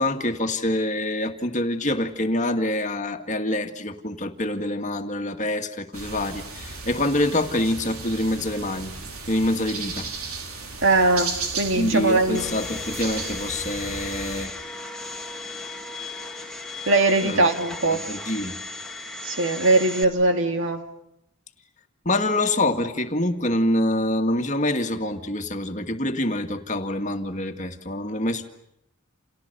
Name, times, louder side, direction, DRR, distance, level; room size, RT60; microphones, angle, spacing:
voice 1, 0.0-9.0 9.3-10.1 11.8-14.5 17.2-17.4 17.8-18.6 22.1-28.5, left 1 dB, 35° left, 2.0 m, -26 dB
sound 1, 5.9-14.5, right 4 dB, 85° right, 3.7 m, -35 dB
voice 2, 10.8-12.6 16.9-18.0 19.2-20.9, right 2 dB, 65° right, 2.5 m, -21 dB
Domestic sounds home sounds, 12.3-20.0, left 2 dB, 5° left, 2.1 m, -36 dB
30.0 x 29.0 x 6.9 m
head